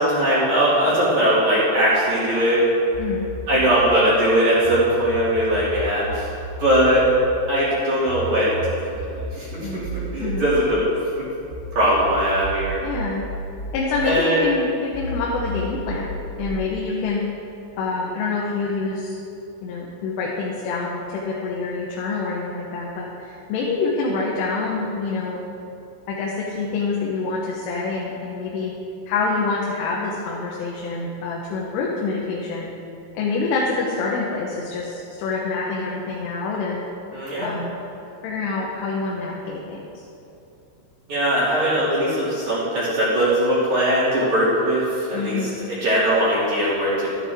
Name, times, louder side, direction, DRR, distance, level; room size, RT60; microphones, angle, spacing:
voice 1, 0.0-2.6 3.5-6.3 6.6-7.1 7.5-8.9 9.3-9.7 10.1-10.8 11.8-12.8 14.0-14.4 37.1-37.5 41.1-47.1, right 1 dB, 45° right, -10 dB, 3.6 m, -20 dB
sound 1, 2.9-4.8 5.1-11.6 11.9-14.6 14.9-16.6, right 2 dB, 90° right, 4.8 m, -33 dB
voice 2, 9.6-9.9 10.2-10.5 12.8-13.2 13.7-17.2 17.8-19.2 19.6-25.4 26.1-28.7 29.1-32.7 33.2-36.8 37.4-37.8 38.2-40.0 45.1-45.6, left 4 dB, 90° left, -4 dB, 3.7 m, -26 dB
13.0 x 12.0 x 3.6 m, 2.7 s
omnidirectional pair, 5.5 m